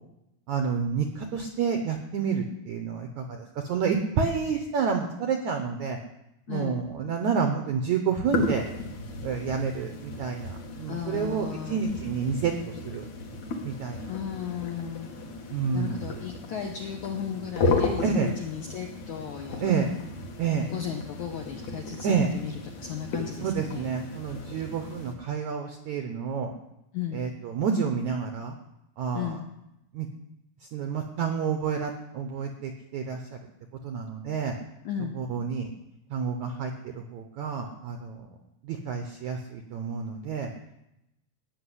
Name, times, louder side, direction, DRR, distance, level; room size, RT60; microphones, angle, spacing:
voice 1, 0.5-6.0 6.5-8.7 9.2-12.5 12.8-13.0 13.6-14.1 15.5-16.0 18.0-18.3 19.6-19.9 20.4-20.7 22.0-22.3 23.4-26.5 27.1-28.6 29.0-29.3 29.9-30.1 30.7-33.4 33.8-34.5 35.2-35.7 36.1-38.2 38.6-40.5, right 6 dB, 75° right, 4 dB, 1.7 m, -29 dB
voice 2, 6.5-6.8 10.9-11.8 14.0-15.1 15.7-19.8 20.7-23.9 26.9-27.3 29.1-29.5 34.8-35.2, left 8 dB, 75° left, 2 dB, 1.8 m, -35 dB
sound 1, 8.3-25.1, left 3 dB, 55° left, 2.4 m, -35 dB
14.0 x 6.3 x 9.9 m, 0.88 s
omnidirectional pair, 4.7 m